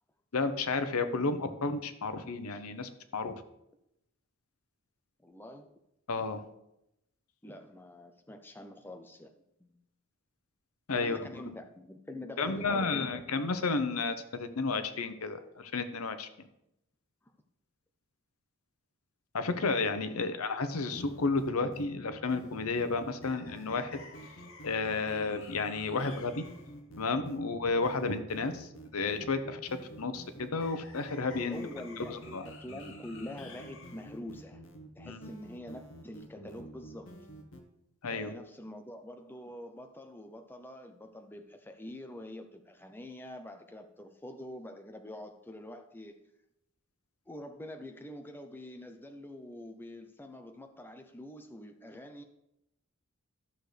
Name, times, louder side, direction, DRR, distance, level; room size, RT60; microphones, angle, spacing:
voice 1, 0.3-3.3 6.1-6.4 10.9-11.3 12.4-16.3 19.3-24.0 24.6-26.4 27.0-29.6 30.0-31.6 32.1-32.5 35.0-35.3 38.0-38.3, left 3 dB, 85° left, 10 dB, 0.8 m, -32 dB
voice 2, 5.2-5.7 7.4-9.3 9.6-9.8 10.9-13.2 20.1-20.3 31.5-34.6 35.0-37.1 38.1-46.2 47.3-52.2, left 1 dB, 10° left, 6 dB, 0.5 m, -45 dB
sound 1, 20.9-37.6, equal, 60° left, 1.0 m, -49 dB
12.5 x 6.4 x 3.3 m, 0.83 s
head